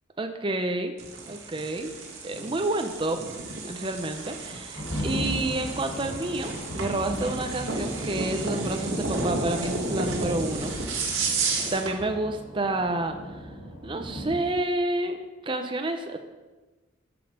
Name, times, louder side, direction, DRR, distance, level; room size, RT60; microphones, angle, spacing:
voice 1, 0.2-0.9 1.2-1.9 2.2-3.2 3.6-10.7 11.7-13.4 13.8-15.2 15.4-16.2, right 2 dB, 25° right, 6 dB, 0.5 m, -29 dB
sound 1, 1.0-12.0, right 3 dB, 80° right, 1.9 m, -32 dB
sound 2, 4.7-14.5, equal, 80° left, 3.8 m, -36 dB
13.0 x 5.4 x 5.1 m, 1.2 s
head